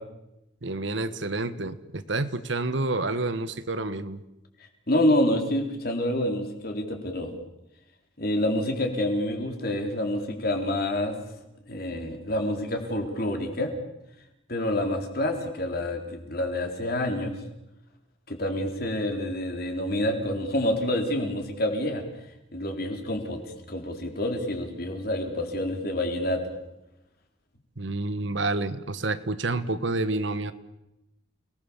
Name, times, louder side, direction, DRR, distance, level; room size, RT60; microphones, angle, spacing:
voice 1, 0.6-4.2 27.8-30.5, right 2 dB, 65° right, 12 dB, 1.3 m, -29 dB
voice 2, 4.9-7.3 8.2-11.1 11.7-13.7 14.5-17.4 18.3-22.0 22.5-26.4, left 1 dB, 50° left, 3 dB, 4.0 m, -27 dB
29.5 x 19.5 x 7.2 m, 0.90 s
head